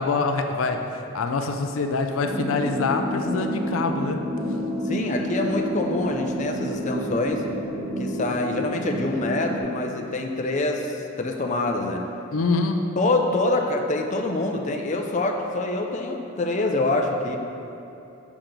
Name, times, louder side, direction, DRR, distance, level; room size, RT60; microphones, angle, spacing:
voice 1, 0.0-4.2 12.3-12.9, left 3 dB, 85° left, 5 dB, 0.5 m, -25 dB
sound 1, 2.2-9.6, equal, 15° right, 1.5 m, -29 dB
voice 2, 4.9-7.4 8.0-12.1 13.0-17.4, left 2 dB, 35° left, 2 dB, 0.5 m, -25 dB
6.0 x 5.9 x 5.1 m, 2.7 s
head